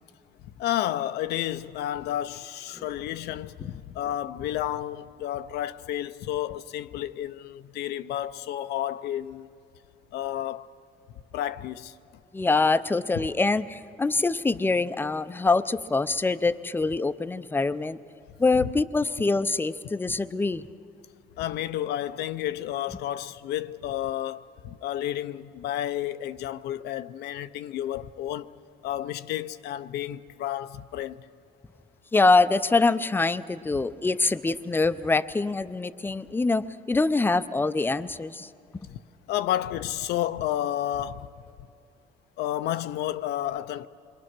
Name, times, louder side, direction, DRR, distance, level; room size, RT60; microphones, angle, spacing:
voice 1, 0.4-9.5 10.1-10.7 11.3-12.0 18.5-18.7 21.4-31.3 38.9-39.0 39.3-41.3 42.4-43.9, left 12 dB, 75° left, 0.6 m, -31 dB
voice 2, 12.3-18.0 18.4-20.7 32.1-38.5, left 3 dB, 10° left, 0.6 m, -24 dB
27.5 x 22.5 x 6.1 m
cardioid pair, 110°, 17 cm